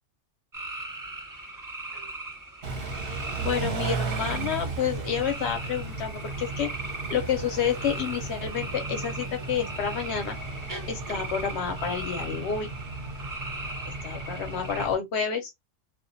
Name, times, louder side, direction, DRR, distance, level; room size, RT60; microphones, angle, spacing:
sound 1, 0.5-14.9, right 2 dB, 30° right, 0.3 m, -39 dB
Car / Idling / Accelerating revving vroom, 2.6-14.9, right 3 dB, 55° right, 0.7 m, -35 dB
voice 1, 3.4-10.4 10.9-12.7 13.9-15.5, left 7 dB, 65° left, 0.8 m, -29 dB
2.2 x 2.2 x 2.5 m
omnidirectional pair, 1.3 m